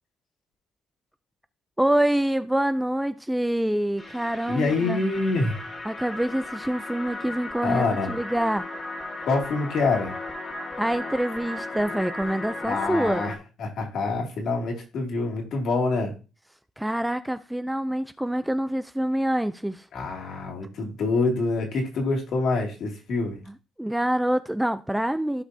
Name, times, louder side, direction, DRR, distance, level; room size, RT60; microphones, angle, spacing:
voice 1, 1.8-5.0 5.8-8.7 10.8-13.2 16.8-19.9 23.8-25.4, right 1 dB, 5° right, 0.4 m, -26 dB
sound 1, 4.0-13.4, left 2 dB, 25° left, 1.7 m, -36 dB
voice 2, 4.5-5.6 7.6-8.1 9.2-10.2 12.6-13.3 13.6-16.1 19.9-23.4, left 3 dB, 60° left, 2.5 m, -26 dB
15.0 x 5.1 x 2.7 m
cardioid pair, 120°, 0 cm